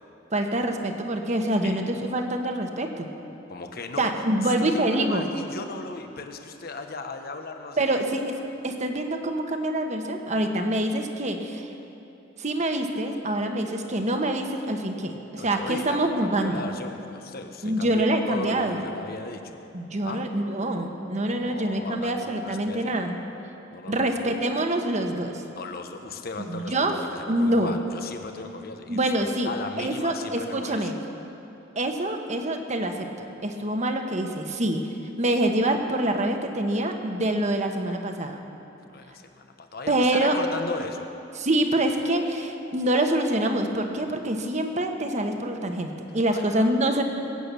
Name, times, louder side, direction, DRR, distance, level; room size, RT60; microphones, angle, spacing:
voice 1, 0.3-3.1 4.0-5.2 7.8-8.2 8.6-11.7 12.4-16.6 17.6-18.8 19.7-23.1 23.9-25.4 26.4-27.0 27.3-27.8 28.9-29.5 29.8-30.9 31.7-34.9 35.2-38.4 39.9-40.4 41.4-47.0, right 1 dB, 40° right, 5 dB, 1.2 m, -26 dB
voice 2, 1.6-2.0 3.5-8.0 15.3-19.6 20.0-20.2 21.4-23.0 23.7-24.3 25.5-31.0 38.9-41.1 46.3-46.8, left 3 dB, 55° left, 6 dB, 1.1 m, -37 dB
22.0 x 8.8 x 6.8 m, 2.9 s
head